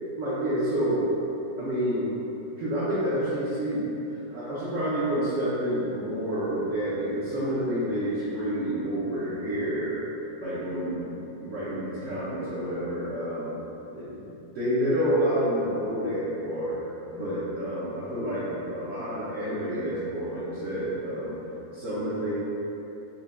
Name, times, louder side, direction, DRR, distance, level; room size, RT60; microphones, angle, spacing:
voice 1, 0.2-1.1 1.6-2.1 2.6-10.0 10.4-13.5 13.9-16.8 17.1-21.3 21.7-22.3, equal, 60° right, -10 dB, 0.8 m, -29 dB
4.3 x 2.7 x 2.4 m, 3.0 s
omnidirectional pair, 1.9 m